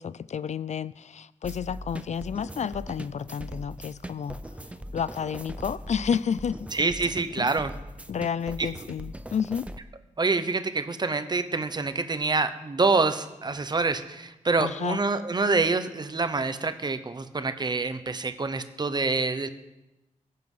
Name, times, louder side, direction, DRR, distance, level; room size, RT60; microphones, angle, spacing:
voice 1, 0.0-6.8 7.4-7.5 8.1-9.7 14.6-15.0, left 7 dB, 60° left, 17 dB, 0.4 m, -31 dB
sound 1, 1.4-9.8, right 1 dB, 10° right, 0.6 m, -40 dB
voice 2, 6.7-7.7 8.6-8.7 10.2-19.5, right 3 dB, 30° right, 10 dB, 0.8 m, -26 dB
22.0 x 7.6 x 5.6 m, 0.96 s
wide cardioid pair, 170°, 13 cm